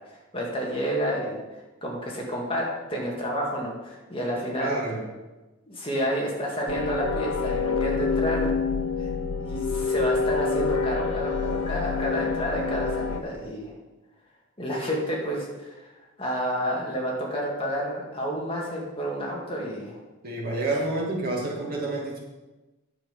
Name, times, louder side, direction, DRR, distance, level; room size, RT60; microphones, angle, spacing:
voice 1, 0.3-1.4 1.8-4.8 5.7-8.7 9.0-9.1 9.4-13.7 14.6-15.9 16.2-20.0, equal, 25° left, -3 dB, 1.9 m, -30 dB
voice 2, 4.6-5.0 20.2-22.2, right 2 dB, 45° right, -3 dB, 2.4 m, -28 dB
sound 1, 6.7-13.2, left 4 dB, 85° left, 0.7 m, -27 dB
10.5 x 7.5 x 5.1 m, 1.1 s
head